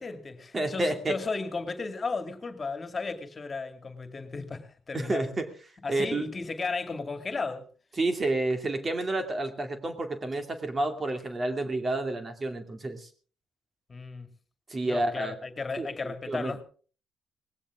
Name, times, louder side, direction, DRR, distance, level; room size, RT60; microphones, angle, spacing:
voice 1, 0.0-5.2 5.8-7.6 13.9-14.3 14.8-16.6, left 4 dB, 35° left, 2.3 m, -34 dB
voice 2, 0.5-1.2 4.9-5.5 5.9-6.3 8.0-13.1 14.7-15.3 15.8-16.5, right 2 dB, 35° right, 2.4 m, -30 dB
19.0 x 16.0 x 3.7 m
supercardioid pair, 65°, 0 cm